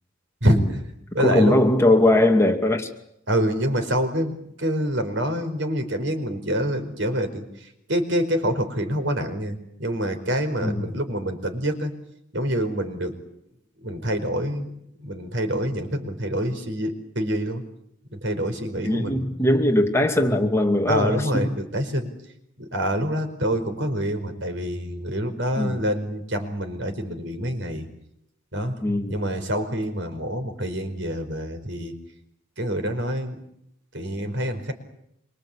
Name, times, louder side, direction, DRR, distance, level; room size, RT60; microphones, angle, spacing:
voice 1, 0.4-0.8 1.1-1.6 3.3-7.4 7.9-11.9 12.3-13.1 13.8-14.7 15.0-17.6 18.2-19.2 20.9-22.1 22.6-27.8 28.5-28.7 29.1-31.9 32.6-33.3 33.9-34.7, equal, 65° right, 7 dB, 4.9 m, -26 dB
voice 2, 1.2-2.9 10.6-10.9 18.8-21.5 25.6-25.8 28.8-29.2, left 1 dB, 15° left, 3 dB, 2.5 m, -20 dB
26.0 x 24.5 x 8.7 m, 0.77 s
head